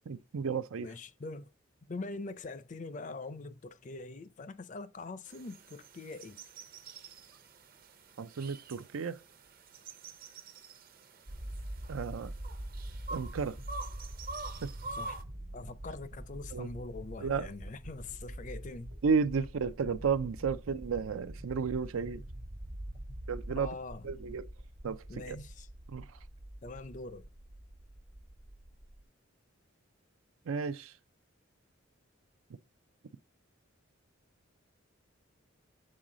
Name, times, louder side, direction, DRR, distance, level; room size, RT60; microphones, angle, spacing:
voice 1, 0.1-0.9 8.2-9.2 11.9-12.3 13.1-13.6 14.6-14.7 16.5-16.7 17.2-17.5 19.0-22.2 23.3-23.7 24.0-24.5 24.8-25.4 25.9-26.1 30.5-30.9, right 5 dB, 85° right, 0.5 m, -33 dB
voice 2, 0.8-1.5 1.9-6.4 14.9-18.9 19.3-19.4 22.9-23.0 23.5-24.1 25.1-25.7 26.6-27.3, left 3 dB, 35° left, 0.4 m, -43 dB
sound 1, 5.3-15.2, right 3 dB, 45° right, 0.7 m, -47 dB
sound 2, 11.3-29.0, right 1 dB, 60° right, 1.2 m, -45 dB
7.6 x 4.0 x 3.7 m
head